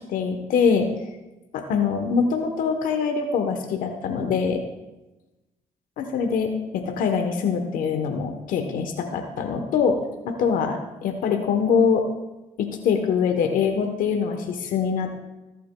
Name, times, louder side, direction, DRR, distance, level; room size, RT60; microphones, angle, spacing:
voice 1, 0.1-1.1 1.5-4.6 6.0-10.0 10.2-12.0 12.6-15.1, left 6 dB, 80° left, 5 dB, 1.0 m, -23 dB
17.5 x 8.5 x 2.2 m, 1.0 s
supercardioid pair, 70°, 14 cm